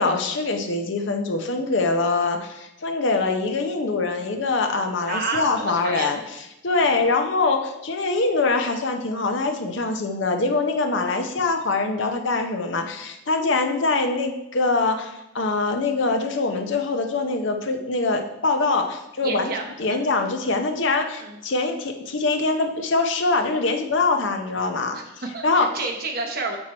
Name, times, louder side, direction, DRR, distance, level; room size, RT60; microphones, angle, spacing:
voice 1, 0.0-19.5 19.8-25.0 25.4-25.7, left 3 dB, 60° left, 6 dB, 0.7 m, -23 dB
voice 2, 5.1-6.2 6.8-7.0 19.2-20.1 21.2-21.4 24.9-26.6, right 3 dB, 45° right, 1 dB, 1.0 m, -30 dB
7.5 x 4.4 x 4.3 m, 0.91 s
head